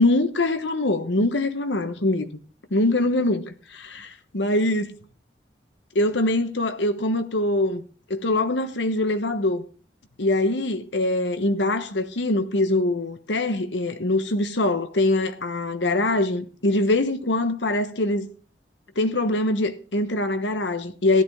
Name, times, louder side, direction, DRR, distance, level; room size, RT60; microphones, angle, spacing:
voice 1, 0.0-2.3 2.7-5.0 5.9-9.6 10.2-18.3 19.0-21.2, left 2 dB, 80° left, 1.2 m, -23 dB
15.0 x 11.0 x 3.7 m
head